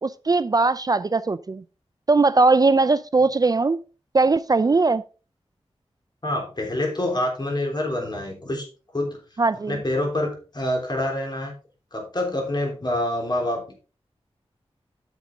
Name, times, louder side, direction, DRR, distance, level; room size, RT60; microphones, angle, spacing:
voice 1, 0.0-1.6 2.1-3.8 4.1-5.0 9.4-9.8, right 3 dB, 35° right, 0.4 m, -19 dB
voice 2, 6.2-8.7 8.9-9.2 9.7-11.5 11.9-13.7, left 1 dB, 40° left, 3.5 m, -26 dB
9.3 x 6.4 x 3.7 m
wide cardioid pair, 75°, 11 cm